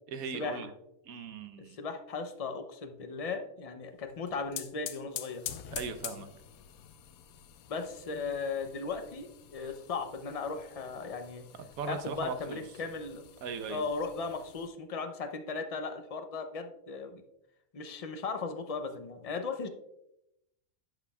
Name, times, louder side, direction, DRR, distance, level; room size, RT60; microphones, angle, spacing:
voice 1, 0.1-0.7 1.0-1.8 5.7-6.3 9.6-9.7 11.8-12.6 13.4-13.8, right 5 dB, 90° right, 9 dB, 1.2 m, -38 dB
voice 2, 1.6-5.4 7.7-11.4 11.8-13.2 13.7-17.2 17.7-19.7, left 4 dB, 50° left, 7 dB, 0.4 m, -37 dB
sound 1, 4.1-14.7, left 10 dB, 90° left, 1.1 m, -47 dB
11.0 x 6.9 x 2.3 m, 0.86 s
omnidirectional pair, 1.5 m